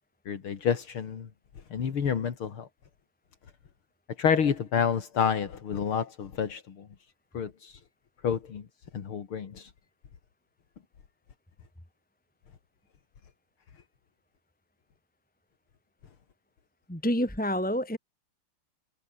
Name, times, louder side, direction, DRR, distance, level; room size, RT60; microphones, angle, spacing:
voice 1, 0.3-1.3 1.7-2.7 4.2-6.9 7.3-7.8 8.2-8.6 8.9-9.7, left 7 dB, 80° left, 3.0 m, -29 dB
voice 2, 16.9-18.0, equal, 5° left, 2.5 m, -28 dB
omnidirectional pair, 2.3 m